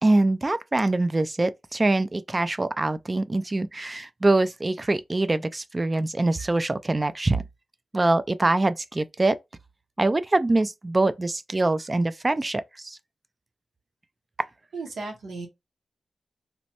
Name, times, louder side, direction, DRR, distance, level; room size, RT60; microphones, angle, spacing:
voice 1, 0.0-7.4 7.9-9.4 10.0-13.0, right 2 dB, 30° right, 0.3 m, -24 dB
voice 2, 14.7-15.5, right 3 dB, 90° right, 0.8 m, -35 dB
3.0 x 2.1 x 2.8 m
cardioid pair, 60°, 0 cm